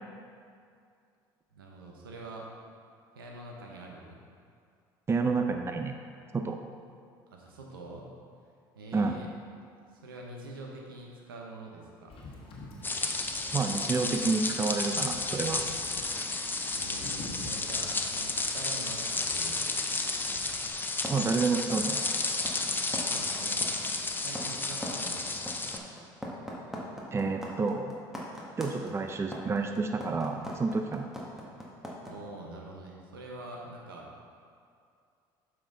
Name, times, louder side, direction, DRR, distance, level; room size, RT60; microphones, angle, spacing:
voice 1, 1.5-2.5 3.1-4.2 7.3-8.1 8.7-9.3 9.9-12.1 16.7-19.6 23.1-23.7 24.2-25.5 32.0-34.1, right 2 dB, 90° right, -1 dB, 1.1 m, -45 dB
voice 2, 5.1-5.9 6.3-6.6 8.9-9.2 13.5-15.6 21.1-22.0 27.1-27.9 28.6-31.1, right 4 dB, 20° right, 5 dB, 0.6 m, -29 dB
Wind / Boat Water vehicle, 12.1-20.7, left 2 dB, 50° left, 1.5 m, -48 dB
sound 1, 12.8-25.8, left 3 dB, 15° left, 0.6 m, -32 dB
sound 2, 21.0-32.1, equal, 5° right, 1.7 m, -40 dB
7.2 x 5.9 x 3.8 m, 2.3 s
hypercardioid pair, 70°, 12 cm